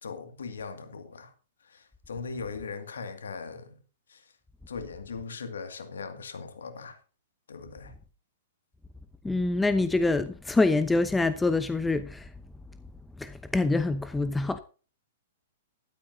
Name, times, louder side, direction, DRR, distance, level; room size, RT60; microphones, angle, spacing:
voice 1, 0.0-1.3 1.6-3.8 4.1-4.3 4.7-7.0 7.5-8.0, left 5 dB, 75° left, 2.2 m, -39 dB
voice 2, 9.2-12.3 13.2-14.6, left 2 dB, 10° left, 0.8 m, -25 dB
13.0 x 12.5 x 2.7 m
hypercardioid pair, 110°, 0 cm